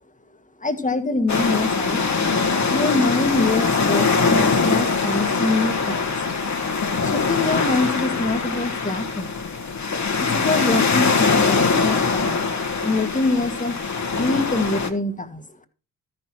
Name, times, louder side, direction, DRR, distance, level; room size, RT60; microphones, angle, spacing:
voice 1, 0.6-2.0 2.7-6.4 7.0-9.4 10.2-12.4 12.8-13.8 14.1-15.6, left 2 dB, 20° left, 8 dB, 1.7 m, -24 dB
sound 1, 1.3-14.9, left 4 dB, 45° left, 1.6 m, -22 dB
13.5 x 6.2 x 4.4 m, 0.34 s
hypercardioid pair, 45°, 40 cm